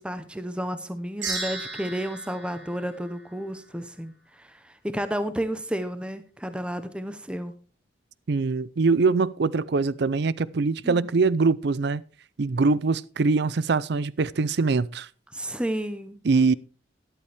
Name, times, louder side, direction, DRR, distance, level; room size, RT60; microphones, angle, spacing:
voice 1, 0.0-7.5 10.8-11.1 15.3-16.2, equal, 5° right, 0.7 m, -32 dB
sound 1, 1.2-3.7, right 3 dB, 90° right, 3.6 m, -35 dB
voice 2, 8.3-12.0 12.4-15.1 16.2-16.5, right 4 dB, 60° right, 0.5 m, -23 dB
13.0 x 11.0 x 3.4 m
head